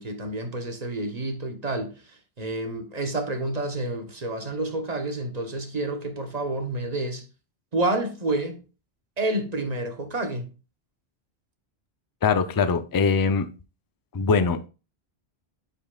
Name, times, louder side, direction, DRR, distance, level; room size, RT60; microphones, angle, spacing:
voice 1, 0.0-2.0 2.4-7.3 7.7-8.6 9.2-10.5, right 2 dB, 40° right, 1.1 m, -29 dB
voice 2, 12.2-13.5 14.1-14.7, left 5 dB, 35° left, 0.4 m, -22 dB
10.0 x 5.5 x 2.3 m
omnidirectional pair, 1.1 m